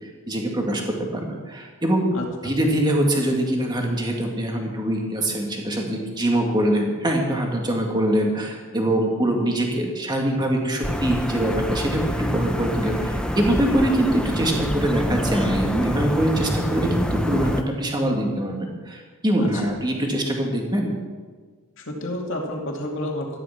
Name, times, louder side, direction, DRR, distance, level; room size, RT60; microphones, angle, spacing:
voice 1, 0.0-2.1 2.4-21.0, right 1 dB, 20° right, 1 dB, 2.1 m, -23 dB
voice 2, 2.1-2.5 19.4-19.5 21.8-23.4, left 1 dB, 60° left, 0 dB, 2.6 m, -30 dB
sound 1, 10.8-17.6, equal, 5° left, 0.7 m, -26 dB
13.5 x 11.0 x 6.0 m, 1.5 s
head